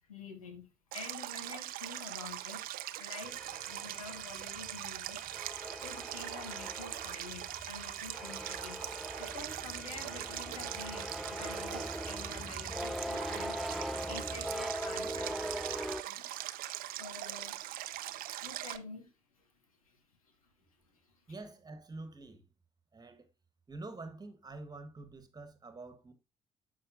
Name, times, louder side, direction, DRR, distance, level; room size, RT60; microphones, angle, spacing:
voice 1, 0.1-2.6 3.0-5.2 5.5-15.4 16.0-16.4 16.9-18.0 18.4-19.5 19.8-20.0 20.2-20.3 20.9-21.2, left 4 dB, 85° left, 1.0 m, -49 dB
Stream, 0.9-18.8, right 14 dB, 55° right, 0.5 m, -41 dB
sound 1, 3.2-16.0, equal, ahead, 0.3 m, -41 dB
voice 2, 21.3-22.5 22.9-23.3 23.7-26.1, right 2 dB, 20° right, 1.4 m, -47 dB
12.5 x 4.5 x 2.6 m
figure-of-eight pair, 50°, 18 cm